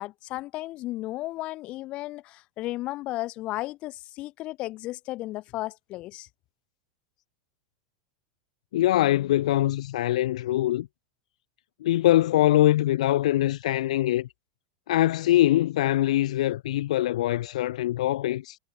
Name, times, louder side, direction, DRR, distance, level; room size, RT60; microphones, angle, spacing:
voice 1, 0.0-6.3, left 17 dB, 30° left, 2.0 m, -34 dB
voice 2, 8.7-10.9 11.8-14.3 14.9-18.6, left 14 dB, 80° left, 0.5 m, -23 dB
supercardioid pair, 170°, 4 cm